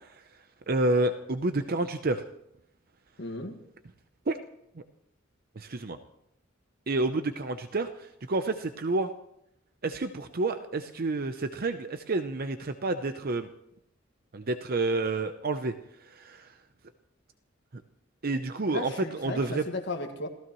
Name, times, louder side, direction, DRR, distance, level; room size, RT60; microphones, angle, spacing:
voice 1, 0.7-2.2 4.3-4.4 5.6-6.0 6.9-7.9 8.3-9.1 9.8-13.5 14.3-15.7 16.2-16.5 18.2-19.6, right 2 dB, 50° right, 9 dB, 0.7 m, -29 dB
voice 2, 3.2-3.6 18.7-20.3, left 2 dB, 60° left, 4 dB, 1.8 m, -35 dB
28.5 x 16.0 x 3.1 m, 0.79 s
head